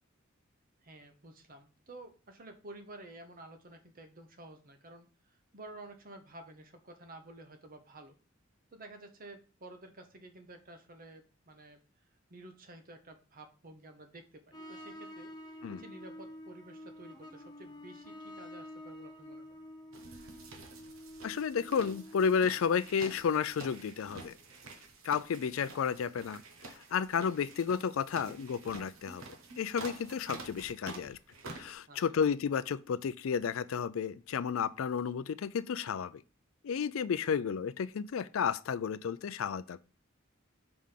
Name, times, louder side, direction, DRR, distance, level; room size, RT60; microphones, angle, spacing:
voice 1, 0.8-5.1 5.5-8.2 8.7-11.8 12.3-19.7 31.9-32.2, right 2 dB, 45° right, 1.0 m, -52 dB
sound 1, 14.5-24.8 25.1-25.3 28.5-28.6 28.8-28.9 29.3-29.4, left 1 dB, 20° left, 0.9 m, -49 dB
sound 2, 19.9-31.7, right 3 dB, 80° right, 1.0 m, -49 dB
voice 2, 21.2-24.4 25.0-26.4 26.7-29.2 29.6-31.2 31.5-36.2 36.6-39.8, left 6 dB, 75° left, 0.4 m, -32 dB
4.9 x 3.7 x 5.7 m
head